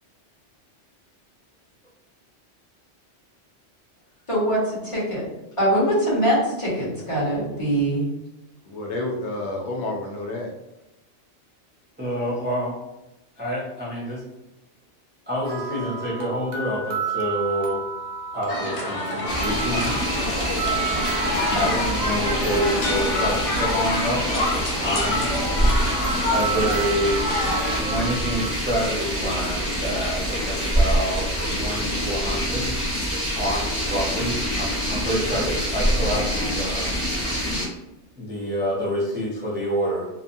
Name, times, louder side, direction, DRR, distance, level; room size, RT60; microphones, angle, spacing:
voice 1, 4.3-5.3 5.6-8.1, right 1 dB, 30° left, -8 dB, 1.2 m, -22 dB
voice 2, 8.6-10.5 19.2-19.3, left 2 dB, 75° left, 0 dB, 0.8 m, -30 dB
voice 3, 12.0-12.8 13.4-14.2 15.3-17.8 18.3-20.0 21.5-25.3 26.3-27.3 27.7-32.8 33.4-37.0 38.2-40.1, equal, 15° right, -6 dB, 0.4 m, -27 dB
sound 1, 15.4-28.5, right 5 dB, 65° right, 0.7 m, -32 dB
sound 2, 18.5-27.8, left 2 dB, 50° left, 0.4 m, -27 dB
sound 3, 19.3-37.7, equal, 10° left, 1.3 m, -26 dB
2.8 x 2.2 x 2.5 m, 0.94 s
omnidirectional pair, 1.2 m